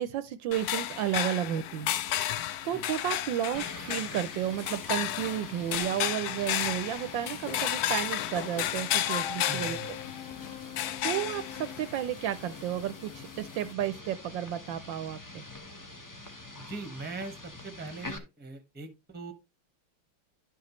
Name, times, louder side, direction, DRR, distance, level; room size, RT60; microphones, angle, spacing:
voice 1, 0.0-1.9 2.6-10.0 11.0-15.4, right 11 dB, 75° right, 1.2 m, -32 dB
sound 1, 0.5-13.7, left 12 dB, 90° left, 0.8 m, -33 dB
sound 2, 3.5-18.2, left 2 dB, 30° left, 0.3 m, -46 dB
Wind instrument woodwind instrument, 9.0-11.9, left 11 dB, 60° left, 0.9 m, -41 dB
voice 2, 9.5-9.9 16.6-19.3, right 3 dB, 5° right, 0.9 m, -41 dB
11.5 x 5.8 x 3.0 m
omnidirectional pair, 2.3 m